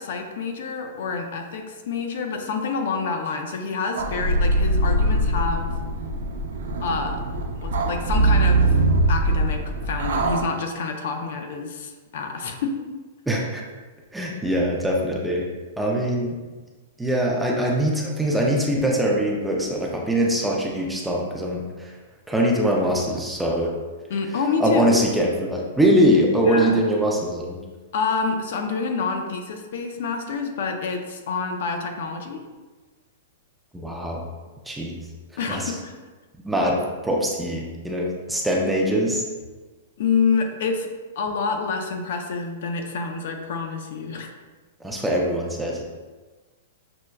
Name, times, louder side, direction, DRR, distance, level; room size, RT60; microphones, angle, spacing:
voice 1, 0.0-5.7 6.8-7.2 7.6-8.8 9.1-12.9 24.1-24.9 26.4-26.8 27.9-32.4 35.4-36.0 40.0-44.3, left 4 dB, 60° left, 5 dB, 0.4 m, -27 dB
sound 1, 4.0-10.4, right 2 dB, 90° right, 0.5 m, -22 dB
voice 2, 13.3-13.6 14.1-15.5 15.8-16.4 17.0-21.9 22.3-23.7 24.6-27.6 33.7-34.2 34.7-35.0 35.5-35.7 36.4-39.2 44.8-45.8, equal, 5° right, -2 dB, 0.3 m, -22 dB
5.9 x 2.1 x 2.2 m, 1.3 s
supercardioid pair, 165°, 0 cm